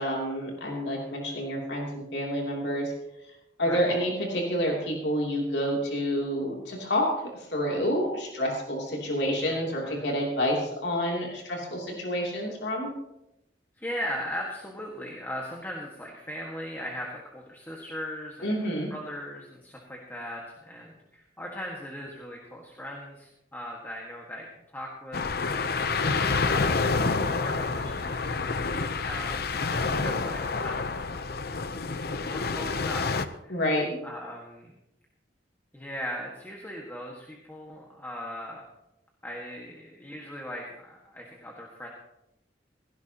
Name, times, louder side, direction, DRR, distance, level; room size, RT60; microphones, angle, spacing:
voice 1, 0.0-2.9 3.6-12.9 18.4-18.9 33.5-34.0, equal, 80° left, -1 dB, 3.0 m, -28 dB
voice 2, 0.9-1.5 3.6-3.9 9.4-10.1 13.8-24.5 24.7-25.6 26.9-28.4 29.0-30.9 32.0-33.6 34.0-34.7 35.7-38.7 39.2-41.9, equal, 10° left, -1 dB, 1.7 m, -39 dB
sound 1, 25.1-33.3, left 4 dB, 60° left, 0.7 m, -28 dB
16.5 x 16.5 x 2.9 m, 0.86 s
head